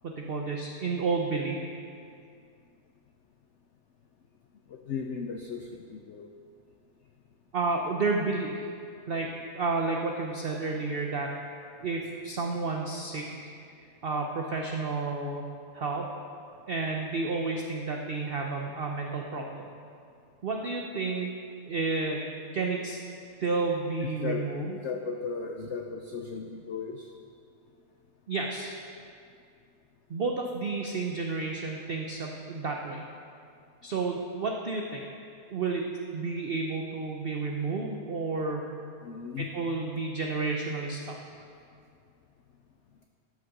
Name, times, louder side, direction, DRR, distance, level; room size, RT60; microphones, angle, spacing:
voice 1, 0.0-1.7 7.5-8.7 9.1-9.3 9.5-11.3 11.8-13.5 14.0-15.5 15.7-16.1 16.7-19.7 20.4-21.3 21.7-22.3 22.5-23.0 23.4-24.8 28.3-28.8 30.1-33.0 33.8-35.0 35.5-38.7 39.4-41.2, right 3 dB, 60° right, 1 dB, 0.6 m, -31 dB
voice 2, 4.7-6.3 24.2-27.1 39.0-39.5, left 5 dB, 85° left, 3 dB, 0.6 m, -36 dB
12.5 x 6.3 x 5.9 m, 2.4 s
omnidirectional pair, 1.9 m